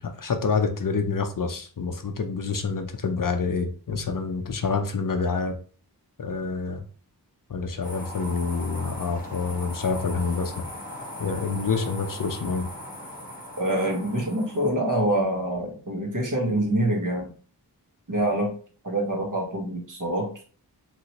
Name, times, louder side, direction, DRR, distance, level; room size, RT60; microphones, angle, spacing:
voice 1, 0.0-5.6 6.2-6.8 7.5-10.6 11.2-12.7, left 4 dB, 50° left, 6 dB, 0.5 m, -27 dB
sound 1, 7.8-14.7, equal, 20° left, 1.2 m, -39 dB
voice 2, 13.6-17.3 18.1-18.5 18.8-20.3, right 1 dB, 50° right, 0 dB, 1.1 m, -25 dB
3.0 x 2.8 x 2.8 m, 0.41 s
wide cardioid pair, 40°, 42 cm